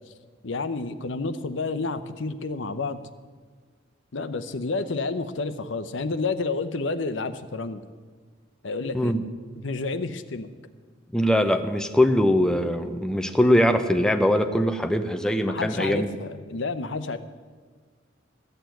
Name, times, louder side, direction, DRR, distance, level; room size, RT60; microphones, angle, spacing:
voice 1, 0.4-3.0 4.1-7.8 8.6-9.1 9.6-10.5 15.5-17.2, left 3 dB, 70° left, 10 dB, 0.8 m, -30 dB
voice 2, 11.1-16.1, left 1 dB, 5° left, 7 dB, 0.7 m, -22 dB
14.0 x 6.8 x 9.2 m, 1.5 s
head